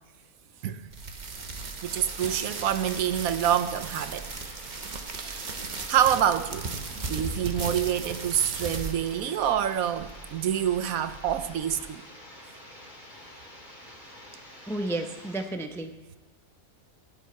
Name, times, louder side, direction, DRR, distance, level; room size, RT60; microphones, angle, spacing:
sound 1, 0.9-11.9, right 4 dB, 35° right, 0.8 m, -37 dB
voice 1, 1.8-4.3 5.2-6.7 7.0-12.0, right 10 dB, 75° right, 1.1 m, -27 dB
sound 2, 2.1-15.5, left 1 dB, 30° left, 3.2 m, -47 dB
voice 2, 14.7-16.2, right 2 dB, 5° left, 0.5 m, -32 dB
14.0 x 5.4 x 9.2 m
omnidirectional pair, 1.6 m